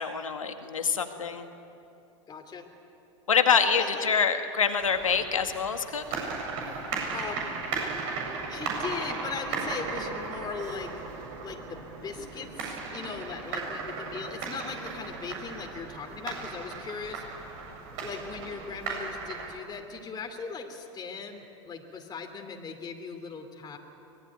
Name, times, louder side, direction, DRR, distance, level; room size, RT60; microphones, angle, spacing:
voice 1, 0.0-1.5 3.3-6.2, left 6 dB, 90° left, 7 dB, 2.0 m, -26 dB
voice 2, 2.3-2.7 3.8-4.1 7.1-7.5 8.3-10.9 11.4-17.2 18.0-23.8, left 5 dB, 25° left, 3 dB, 2.8 m, -39 dB
sound 1, 4.8-19.5, right 4 dB, 55° right, 7.8 m, -36 dB
24.5 x 20.0 x 9.6 m, 2.7 s
hypercardioid pair, 95°, 17 cm